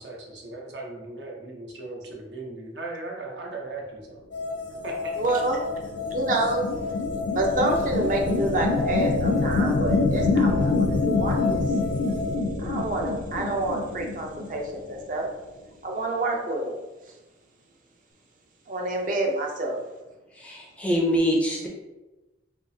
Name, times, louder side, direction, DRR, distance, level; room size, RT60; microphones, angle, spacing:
voice 1, 0.0-4.2 4.8-5.2, right 2 dB, 75° right, -1 dB, 0.8 m, -37 dB
sound 1, 4.3-12.4, left 4 dB, 90° left, 0.8 m, -32 dB
sound 2, 5.2-14.9, left 3 dB, 65° left, 0.4 m, -26 dB
voice 2, 5.2-5.6 6.1-6.7 7.3-11.6 12.6-15.3 15.8-16.7 18.7-19.8, right 2 dB, 45° right, 1 dB, 0.6 m, -28 dB
voice 3, 20.3-21.7, equal, 5° left, -2 dB, 0.4 m, -24 dB
3.6 x 2.8 x 2.7 m, 1.1 s
head